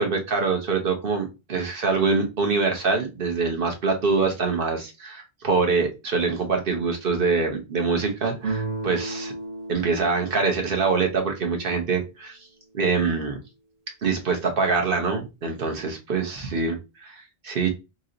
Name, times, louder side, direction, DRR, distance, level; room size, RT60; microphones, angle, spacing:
voice 1, 0.0-9.3 9.7-12.4 12.7-13.4 14.0-17.7, right 4 dB, 60° right, 3 dB, 1.2 m, -24 dB
sound 1, 8.4-12.0, right 3 dB, 85° right, 1.4 m, -34 dB
3.1 x 2.8 x 3.9 m, 0.26 s
omnidirectional pair, 1.0 m